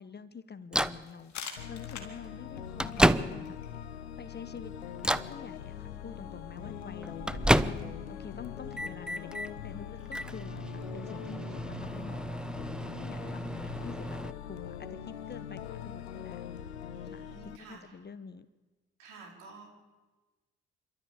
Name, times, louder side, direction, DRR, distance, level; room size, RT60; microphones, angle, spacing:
voice 1, 0.0-1.3 1.7-3.6 4.2-4.7 5.3-7.5 8.1-9.3 9.6-12.2 12.9-16.4 17.1-18.5, left 5 dB, 30° left, 16 dB, 1.0 m, -47 dB
Microwave oven, 0.7-1.0 2.0-2.1 2.5-3.7 4.2-4.5 5.0-5.4 6.6-8.1 8.4-9.5 10.1-14.3, right 1 dB, 5° right, 0.8 m, -31 dB
sound 1, 1.0-6.5, left 6 dB, 60° left, 2.8 m, -49 dB
sound 2, 1.6-17.6, left 9 dB, 90° left, 0.7 m, -42 dB
voice 2, 16.9-18.0 19.0-19.7, right 4 dB, 75° right, 1 dB, 4.3 m, -51 dB
26.5 x 13.0 x 8.5 m, 1.3 s
hypercardioid pair, 45°, 32 cm